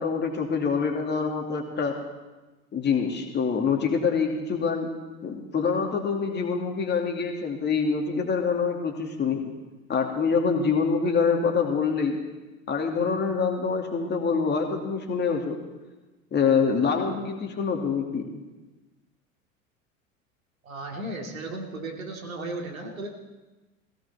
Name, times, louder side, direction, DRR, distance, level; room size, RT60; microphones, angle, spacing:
voice 1, 0.0-2.0 2.7-4.9 5.2-9.4 9.9-12.2 12.7-15.6 16.3-18.4, left 5 dB, 25° left, 2 dB, 2.5 m, -25 dB
voice 2, 20.6-23.1, right 2 dB, 75° right, 1 dB, 2.8 m, -35 dB
17.5 x 17.0 x 4.2 m, 1.2 s
figure-of-eight pair, 85°, 41 cm